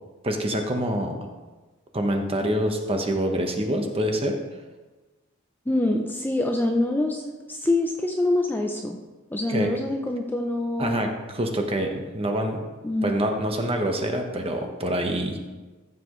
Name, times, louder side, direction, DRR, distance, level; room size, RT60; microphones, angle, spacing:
voice 1, 0.2-1.2 1.9-4.4 9.5-9.7 10.8-12.6 13.0-15.4, right 1 dB, 30° right, 3 dB, 1.1 m, -26 dB
voice 2, 5.7-9.0 9.3-11.1 12.8-13.1, left 2 dB, 10° left, 2 dB, 0.5 m, -25 dB
13.5 x 7.3 x 3.2 m, 1.2 s
head